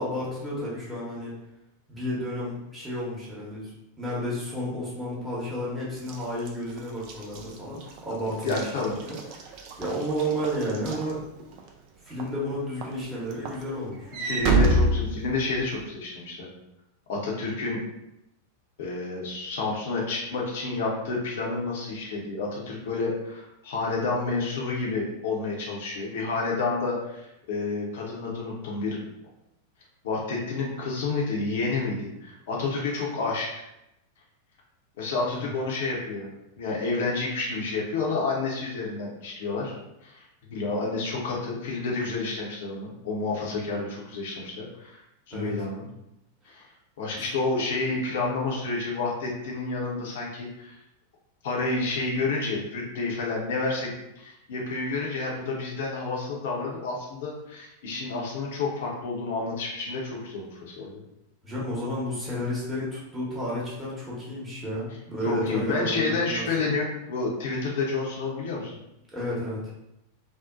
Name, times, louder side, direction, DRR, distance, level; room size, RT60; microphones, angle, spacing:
voice 1, 0.0-1.3 1.9-11.2 12.0-14.2 35.3-35.5 45.3-45.5 47.2-47.3 61.4-66.8 69.1-69.6, equal, 10° right, -7 dB, 0.9 m, -32 dB
Walk footsteps / Slam, 6.0-11.7 12.2-12.5 12.8-15.8, right 2 dB, 40° right, 0.3 m, -28 dB
voice 2, 8.4-8.9 14.2-16.5 17.1-17.8 18.8-29.0 30.0-33.6 35.0-36.3 36.6-39.7 40.0-40.2 40.5-45.0 45.3-45.9 46.5-46.6 47.0-50.8 51.4-53.9 54.2-61.0 65.2-68.7, left 3 dB, 55° left, -3 dB, 0.6 m, -29 dB
2.7 x 2.0 x 2.4 m, 0.87 s
figure-of-eight pair, 90°, 0 cm